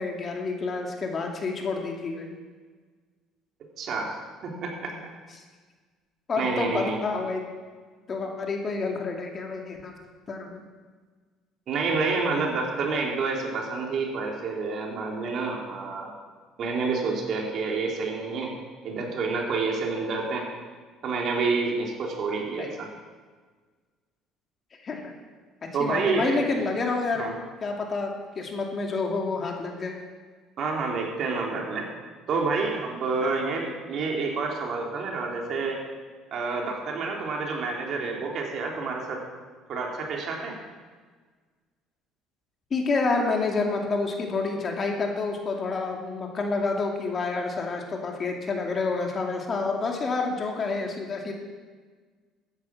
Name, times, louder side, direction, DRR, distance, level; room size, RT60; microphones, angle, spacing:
voice 1, 0.0-2.3 6.3-7.4 8.1-9.9 10.3-10.6 22.6-22.8 24.8-25.1 25.8-27.2 27.6-28.1 28.4-30.0 33.2-33.3 42.7-51.3, left 3 dB, 35° left, 2 dB, 2.4 m, -28 dB
voice 2, 3.8-4.1 4.4-4.9 6.4-7.0 11.7-16.1 16.6-18.5 18.8-20.5 21.0-22.9 25.7-26.4 27.2-27.3 30.6-31.9 32.3-35.8 36.3-39.2 39.7-40.6, right 4 dB, 55° right, 0 dB, 3.1 m, -28 dB
14.5 x 9.8 x 6.0 m, 1.5 s
cardioid pair, 100°, 0 cm